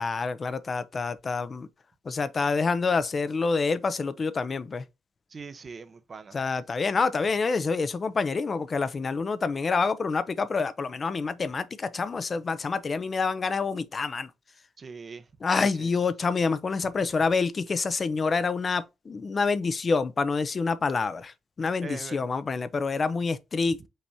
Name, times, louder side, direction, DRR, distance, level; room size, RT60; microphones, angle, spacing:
voice 1, 0.0-1.7 2.1-4.8 6.3-14.3 15.4-23.9, left 4 dB, 35° left, 0.5 m, -27 dB
voice 2, 5.3-6.4 14.8-15.2 15.8-15.9 21.8-22.2, right 5 dB, 35° right, 0.6 m, -41 dB
5.4 x 3.4 x 2.6 m
cardioid pair, 90°, 0 cm